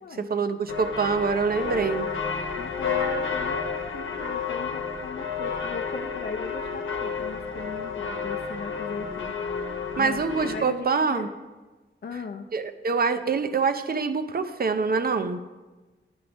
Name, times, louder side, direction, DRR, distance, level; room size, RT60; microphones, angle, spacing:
voice 1, 0.2-2.1 10.0-11.3 12.5-15.4, right 5 dB, 50° right, 10 dB, 0.6 m, -25 dB
sound 1, 0.7-10.6, left 5 dB, 80° left, 0.9 m, -31 dB
voice 2, 2.6-9.3 9.6-11.3 12.0-12.5, left 5 dB, 55° left, 4 dB, 0.5 m, -38 dB
10.5 x 6.0 x 3.4 m, 1.2 s
wide cardioid pair, 100°, 20 cm